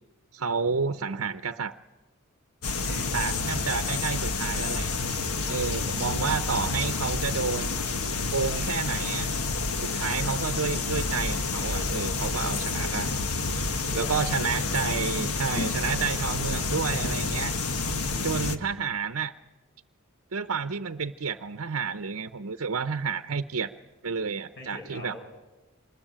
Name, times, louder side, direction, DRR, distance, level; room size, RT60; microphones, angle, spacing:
voice 1, 0.3-1.7 3.1-4.9 5.5-7.8 8.3-9.3 9.8-13.1 13.9-17.5 18.2-19.3 20.3-23.7 24.0-25.1, right 5 dB, 70° right, 9 dB, 0.8 m, -30 dB
sound 1, 2.6-18.6, left 3 dB, 85° left, 1.4 m, -29 dB
voice 2, 2.8-3.2 13.8-15.0 18.4-18.9 24.5-25.2, left 1 dB, 50° left, 2 dB, 7.0 m, -43 dB
26.0 x 21.0 x 9.0 m, 1.1 s
head